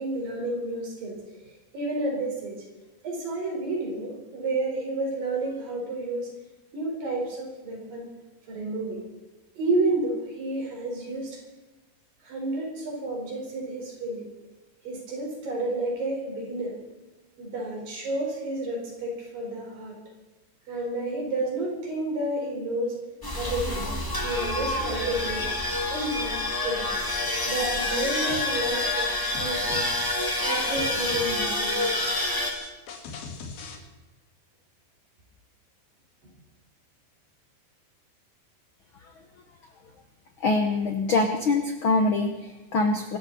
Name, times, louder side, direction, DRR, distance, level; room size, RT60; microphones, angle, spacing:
voice 1, 0.0-2.6 3.0-6.3 6.7-8.1 8.5-9.0 9.6-11.4 12.2-14.3 14.8-16.7 17.4-20.0 20.7-23.0 23.4-23.8 24.2-25.5 25.9-26.4 26.6-26.9 27.4-29.9 30.4-32.0, right 2 dB, 70° right, -1 dB, 6.4 m, -30 dB
sound 1, 23.2-32.5, left 2 dB, 10° left, 1.1 m, -28 dB
sound 2, 28.3-33.8, left 5 dB, 90° left, 3.8 m, -40 dB
voice 2, 40.4-43.2, left 3 dB, 70° left, 5 dB, 1.2 m, -24 dB
25.0 x 13.0 x 4.2 m, 1.2 s
omnidirectional pair, 4.1 m